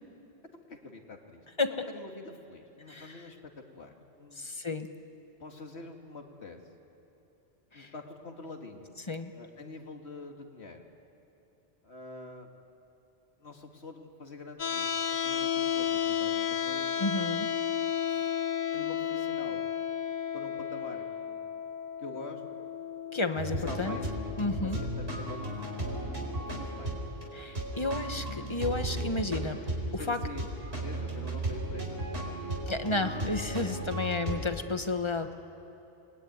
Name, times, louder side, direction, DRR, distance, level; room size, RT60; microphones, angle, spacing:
voice 1, 0.5-1.4 1.9-4.6 5.4-6.6 7.7-8.9 9.3-10.9 11.8-12.5 13.4-17.0 18.1-18.3 18.7-19.7 20.3-21.6 22.0-22.4 23.5-25.8 26.4-27.0 30.0-30.4 30.8-32.6, left 3 dB, 75° left, 3 dB, 2.4 m, -46 dB
voice 2, 2.9-3.2 4.4-4.9 7.7-7.9 9.1-9.3 17.0-17.5 23.1-24.0 24.4-24.8 27.3-29.6 29.9-30.2 32.7-35.3, left 3 dB, 25° left, 8 dB, 1.1 m, -32 dB
sound 1, 14.6-26.6, left 9 dB, 50° left, 0.8 m, -33 dB
sound 2, 23.4-34.4, right 1 dB, 70° right, 4.5 m, -35 dB
29.5 x 21.0 x 9.5 m, 2.9 s
omnidirectional pair, 1.1 m